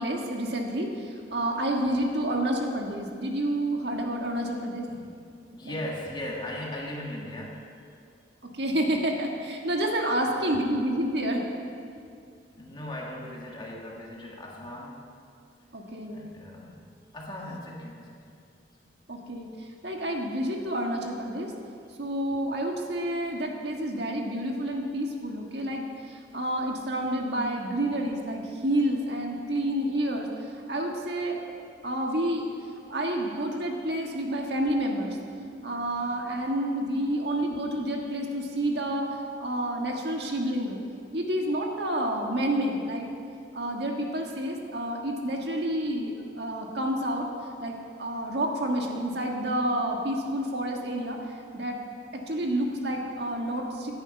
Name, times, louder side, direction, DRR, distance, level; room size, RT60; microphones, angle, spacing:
voice 1, 0.0-4.9 5.6-5.7 8.4-11.4 15.7-16.3 19.1-21.5 22.0-30.3 30.7-31.4 31.8-32.5 32.9-35.2 35.6-39.1 39.4-40.8 41.1-43.1 43.5-47.3 47.6-51.2 51.5-51.8 52.1-53.9, right 1 dB, 60° right, 1 dB, 1.6 m, -29 dB
voice 2, 4.9-5.2 5.5-7.7 10.1-10.4 12.5-15.1 16.1-18.4 18.8-18.9, left 1 dB, 25° left, -2 dB, 2.0 m, -38 dB
17.5 x 9.8 x 5.4 m, 2.4 s
head